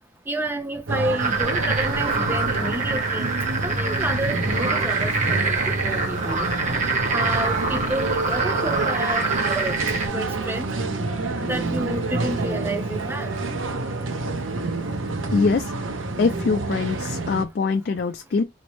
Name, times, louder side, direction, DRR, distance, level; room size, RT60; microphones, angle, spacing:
voice 1, 0.3-3.3 3.6-6.5 7.1-9.8 10.1-10.7 11.4-13.4, right 1 dB, 10° right, 0.4 m, -30 dB
sound 1, 0.9-17.4, right 2 dB, 80° right, 0.7 m, -28 dB
sound 2, 1.2-10.1, right 4 dB, 35° right, 0.8 m, -25 dB
Wind instrument woodwind instrument, 8.1-15.0, right 2 dB, 65° right, 1.6 m, -43 dB
voice 2, 15.3-15.7 16.2-18.4, left 4 dB, 50° left, 0.3 m, -23 dB
4.2 x 2.0 x 3.0 m
head